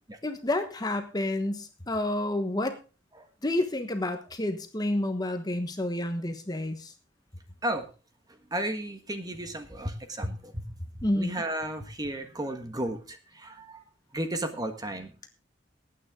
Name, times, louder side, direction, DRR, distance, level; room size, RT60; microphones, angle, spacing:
voice 1, 0.2-2.8 3.4-6.9 11.0-11.3, left 1 dB, 20° left, 7 dB, 1.2 m, -29 dB
voice 2, 8.5-13.8 14.1-15.3, right 1 dB, 20° right, 7 dB, 1.5 m, -34 dB
19.0 x 9.1 x 3.8 m, 0.33 s
head